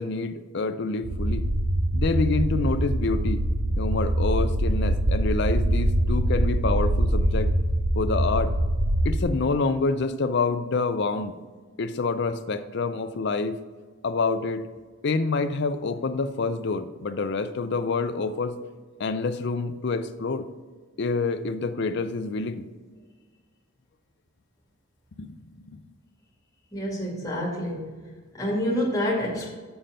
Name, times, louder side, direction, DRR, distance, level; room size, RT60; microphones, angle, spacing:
voice 1, 0.0-1.5 1.9-3.4 3.8-7.5 8.0-8.5 9.0-11.4 11.8-13.6 14.0-14.6 15.0-18.6 19.0-20.5 21.0-22.7 25.2-25.4 25.7-25.8, left 3 dB, 55° left, 10 dB, 0.5 m, -27 dB
sound 1, 1.0-9.2, right 1 dB, 90° right, 1.0 m, -24 dB
voice 2, 26.7-27.9 28.3-29.5, equal, 15° left, -3 dB, 2.1 m, -27 dB
7.1 x 5.7 x 5.1 m, 1.4 s
head